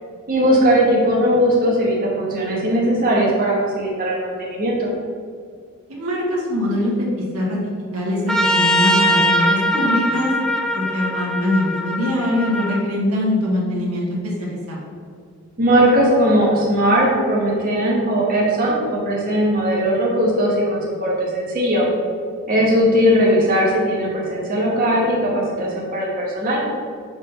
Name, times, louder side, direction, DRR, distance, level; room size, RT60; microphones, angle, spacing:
voice 1, 0.3-4.9 15.6-21.9 22.5-26.6, equal, 40° right, -4 dB, 1.2 m, -18 dB
voice 2, 5.9-7.1 7.3-7.6 7.9-10.3 10.7-14.1 14.4-14.8, left 1 dB, 80° right, -4 dB, 1.4 m, -22 dB
Trumpet, 8.3-12.8, equal, ahead, 0.3 m, -21 dB
4.8 x 4.0 x 5.6 m, 2.2 s
head